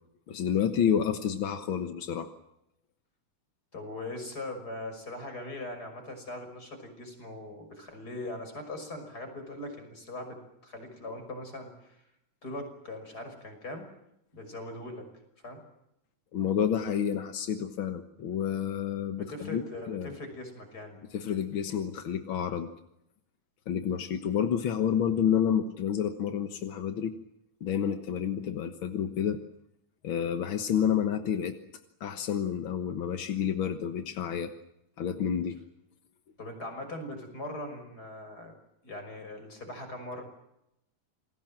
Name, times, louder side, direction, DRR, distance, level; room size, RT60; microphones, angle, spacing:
voice 1, 0.3-2.3 16.3-19.6 19.9-20.1 21.1-22.7 23.7-27.1 27.6-29.4 30.0-31.6 32.0-34.5 35.0-35.6, left 8 dB, 55° left, 8 dB, 1.5 m, -29 dB
voice 2, 3.7-12.0 12.4-13.9 14.3-15.1 15.4-15.6 19.2-21.0 36.4-38.5 38.8-40.2, left 1 dB, 25° left, 6 dB, 6.3 m, -40 dB
28.5 x 21.0 x 7.6 m, 0.83 s
omnidirectional pair, 3.7 m